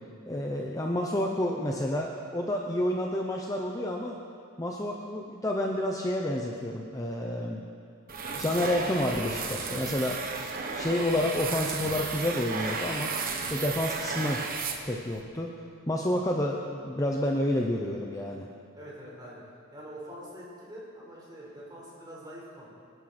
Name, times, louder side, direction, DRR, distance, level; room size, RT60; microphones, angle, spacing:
voice 1, 0.3-4.2 4.6-7.6 8.3-10.3 10.7-13.1 13.5-14.4 14.9-15.5 15.9-18.5, left 1 dB, 15° left, 0 dB, 0.8 m, -29 dB
sound 1, 8.1-15.2, right 4 dB, 40° right, 1.3 m, -34 dB
voice 2, 18.8-19.4 19.7-22.7, equal, 20° right, -5 dB, 4.5 m, -45 dB
25.0 x 11.5 x 4.4 m, 2.3 s
head